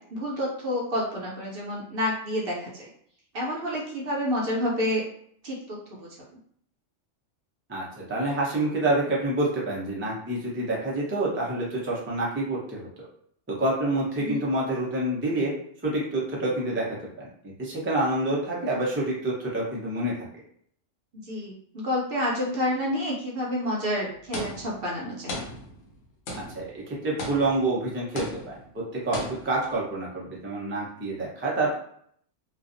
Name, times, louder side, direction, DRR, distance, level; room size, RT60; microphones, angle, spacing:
voice 1, 0.1-2.9 3.3-5.0 5.4-6.1 14.2-14.4 21.2-25.3, left 1 dB, 55° right, -3 dB, 0.8 m, -29 dB
voice 2, 7.7-13.1 13.5-15.5 15.8-17.0 17.4-20.1 26.5-31.8, right 2 dB, 15° right, -5 dB, 0.4 m, -27 dB
sound 1, 24.3-24.9 25.3-26.0 26.3-26.8 27.2-27.8 28.2-28.7 29.1-29.7, left 1 dB, 85° left, 1.1 m, -36 dB
2.5 x 2.3 x 2.5 m, 0.65 s
omnidirectional pair, 1.3 m